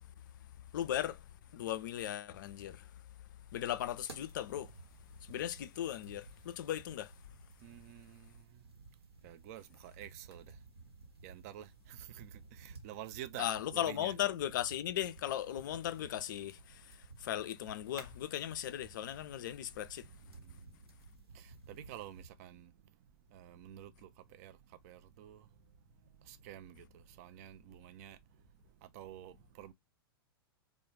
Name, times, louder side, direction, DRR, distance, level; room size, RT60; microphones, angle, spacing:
voice 1, 0.7-1.2 1.5-2.8 3.5-4.7 5.2-7.1 13.4-16.9 17.2-20.1, left 11 dB, 50° left, 0.4 m, -37 dB
sound 1, 4.1-22.3, right 3 dB, 80° right, 0.9 m, -56 dB
voice 2, 7.6-8.3 9.2-10.5 11.2-14.2 21.3-22.7 23.3-24.1 24.4-24.6 24.8-25.4 26.3-28.2 28.8-29.7, right 12 dB, 40° right, 0.4 m, -49 dB
2.2 x 2.1 x 3.1 m
figure-of-eight pair, 105°, 13 cm